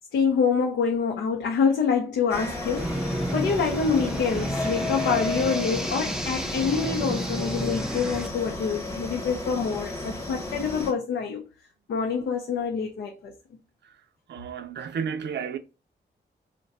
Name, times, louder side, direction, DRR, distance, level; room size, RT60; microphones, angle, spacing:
voice 1, 0.1-11.4 11.9-13.3, left 6 dB, 85° left, 0.6 m, -26 dB
sound 1, 2.3-10.9, left 2 dB, 15° left, 1.0 m, -33 dB
sound 2, 2.8-8.3, right 1 dB, 5° right, 0.5 m, -31 dB
voice 2, 14.3-15.6, right 7 dB, 70° right, 0.5 m, -32 dB
2.6 x 2.2 x 4.0 m
cardioid pair, 60°, 19 cm